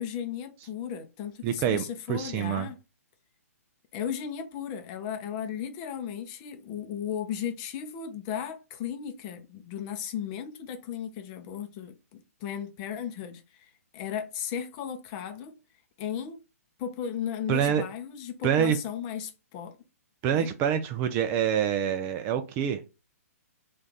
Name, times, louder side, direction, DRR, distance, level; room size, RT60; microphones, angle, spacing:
voice 1, 0.0-2.8 3.9-15.5 16.0-16.4 16.8-19.8 20.3-20.5, left 8 dB, 30° left, 0.6 m, -35 dB
voice 2, 1.4-1.8 2.1-2.7 17.5-17.8 18.4-18.8 20.2-22.8, right 9 dB, 25° right, 0.4 m, -26 dB
3.2 x 2.4 x 3.9 m
figure-of-eight pair, 125°, 8 cm